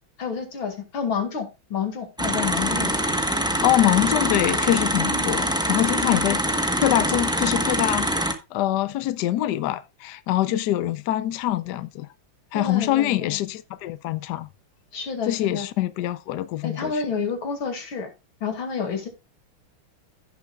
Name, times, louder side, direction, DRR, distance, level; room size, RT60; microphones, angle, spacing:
voice 1, 0.2-2.9 5.0-5.3 6.0-6.3 10.4-10.6 12.5-13.4 14.9-15.7 16.6-18.1 18.4-19.1, left 6 dB, 90° left, 2.9 m, -29 dB
sound 1, 2.2-8.3, equal, 5° right, 0.6 m, -24 dB
voice 2, 3.6-6.4 6.8-12.1 12.5-14.5 15.3-17.1, left 13 dB, 70° left, 1.1 m, -24 dB
16.0 x 6.8 x 2.3 m
omnidirectional pair, 2.1 m